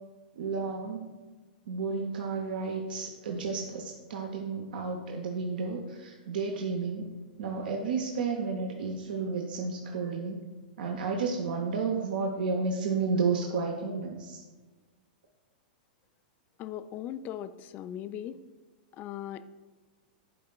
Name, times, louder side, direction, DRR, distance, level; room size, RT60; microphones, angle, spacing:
voice 1, 0.4-1.1 1.7-7.1 7.4-10.4 10.8-14.4, right 4 dB, 75° right, 2 dB, 0.7 m, -32 dB
voice 2, 16.6-18.4 19.0-19.4, left 11 dB, 35° left, 12 dB, 0.3 m, -38 dB
11.0 x 4.2 x 2.3 m, 1.3 s
hypercardioid pair, 115°, 5 cm